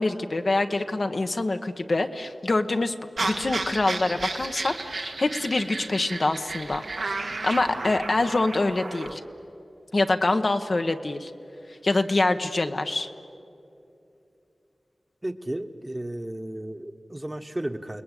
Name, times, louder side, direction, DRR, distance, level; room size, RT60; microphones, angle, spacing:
voice 1, 0.0-2.9 3.2-6.8 7.4-9.2 9.9-11.3 11.8-13.1, left 2 dB, 60° left, 6 dB, 1.2 m, -25 dB
sound 1, 3.2-9.1, right 3 dB, 85° right, 2.0 m, -33 dB
voice 2, 15.2-18.0, right 1 dB, 25° right, 8 dB, 1.4 m, -33 dB
28.5 x 20.0 x 8.4 m, 2.7 s
cardioid pair, 40°, 0 cm